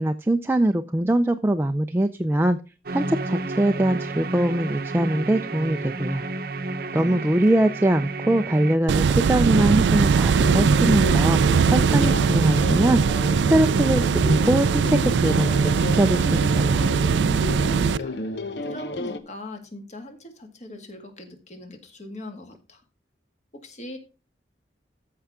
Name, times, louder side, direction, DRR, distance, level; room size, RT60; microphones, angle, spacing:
voice 1, 0.0-2.6 2.9-6.2 6.9-11.4 11.7-13.0 13.5-16.8, right 1 dB, 15° right, 6 dB, 0.4 m, -22 dB
sound 1, 2.9-8.8, right 2 dB, 55° right, 0.8 m, -31 dB
voice 2, 6.9-7.6 17.5-18.2 18.6-22.8 23.5-24.0, left 1 dB, 40° left, 5 dB, 2.0 m, -41 dB
sound 2, 8.9-18.0, right 5 dB, 85° right, 0.4 m, -20 dB
sound 3, 10.4-19.2, left 1 dB, 75° left, 1.0 m, -31 dB
14.0 x 5.6 x 3.6 m, 0.33 s
head